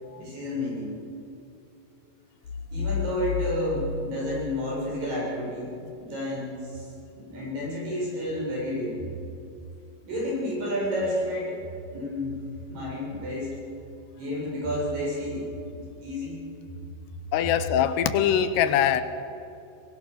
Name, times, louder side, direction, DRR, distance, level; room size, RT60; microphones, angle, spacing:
voice 1, 0.1-0.9 2.7-6.8 7.1-9.0 10.0-11.6 11.9-12.3 12.7-13.6 14.1-16.4, left 1 dB, 55° right, -5 dB, 9.3 m, -30 dB
sound 1, 2.4-5.3, left 7 dB, 60° left, 1.7 m, -33 dB
voice 2, 17.3-19.0, left 9 dB, 85° left, 11 dB, 3.1 m, -23 dB
22.5 x 21.0 x 6.5 m, 2.7 s
omnidirectional pair, 4.7 m